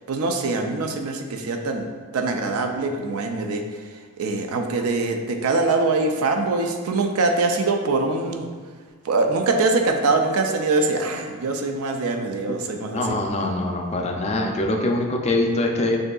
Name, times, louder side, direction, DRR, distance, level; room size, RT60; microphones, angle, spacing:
voice 1, 0.1-1.9 2.1-8.5 9.0-13.2, right 3 dB, 70° right, 4 dB, 0.4 m, -23 dB
voice 2, 12.9-16.0, left 2 dB, 30° left, 2 dB, 0.4 m, -23 dB
6.1 x 2.7 x 2.3 m, 1.5 s
head